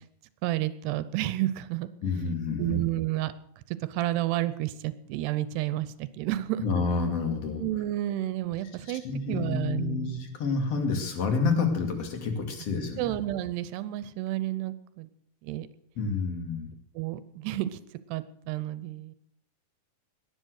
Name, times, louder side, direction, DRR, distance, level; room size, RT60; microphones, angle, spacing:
voice 1, 0.4-3.3 3.9-6.7 7.6-9.0 9.3-10.1 13.0-15.1 15.4-15.7 17.0-17.8 18.1-19.2, right 14 dB, 85° right, 14 dB, 2.8 m, -31 dB
voice 2, 2.0-2.8 6.6-7.6 8.8-13.2 16.0-16.7, left 4 dB, 40° left, 5 dB, 3.1 m, -29 dB
18.5 x 10.5 x 6.4 m, 0.70 s
omnidirectional pair, 4.7 m